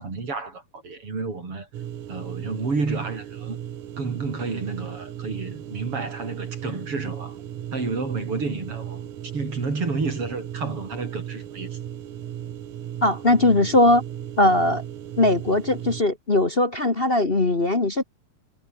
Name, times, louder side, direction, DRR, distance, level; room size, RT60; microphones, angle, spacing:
voice 1, 0.0-1.7 2.1-3.6 4.0-7.4 7.7-9.1 9.3-11.8, right 3 dB, 45° right, 5.9 m, -30 dB
sound 1, 1.7-16.0, right 10 dB, 90° right, 3.1 m, -36 dB
voice 2, 13.0-14.0 14.4-14.8 15.2-18.0, left 2 dB, 30° left, 1.2 m, -20 dB
omnidirectional pair, 3.4 m